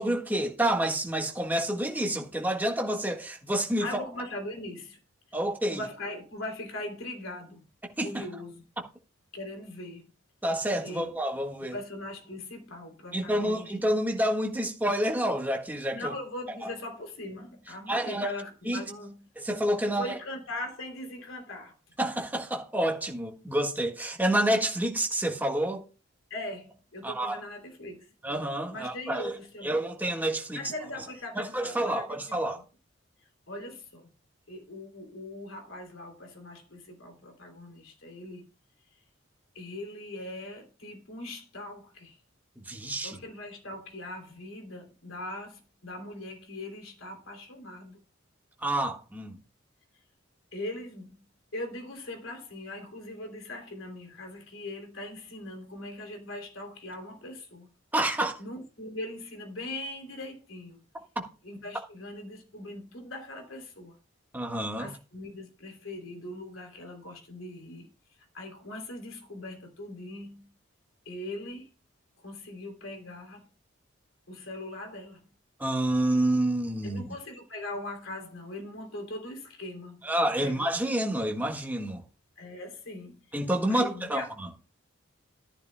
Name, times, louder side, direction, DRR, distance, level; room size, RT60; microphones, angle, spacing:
voice 1, 0.0-3.9 5.3-5.8 8.0-8.2 10.4-11.7 13.1-16.1 16.6-16.7 17.9-18.3 18.6-18.8 19.4-20.2 22.0-25.8 27.0-27.4 28.2-29.3 29.6-30.6 31.3-32.6 42.6-43.2 48.6-49.4 57.9-58.4 64.3-64.9 75.6-77.0 80.0-82.0 83.3-84.2, right 1 dB, 10° right, 1.6 m, -28 dB
voice 2, 3.8-5.0 5.7-7.6 8.0-8.6 9.3-10.1 10.8-11.1 11.7-13.8 15.9-19.3 19.9-21.7 26.3-28.1 28.7-29.8 30.5-32.6 33.5-34.1 34.5-38.5 39.5-42.2 43.0-48.0 50.5-51.2 51.5-57.7 58.4-60.8 61.4-64.0 64.8-67.9 68.3-70.5 71.0-71.7 72.2-73.5 74.3-75.3 76.8-80.0 80.4-80.7 82.4-83.3 83.7-84.3, left 1 dB, 80° left, 3.1 m, -40 dB
14.0 x 11.0 x 2.2 m
head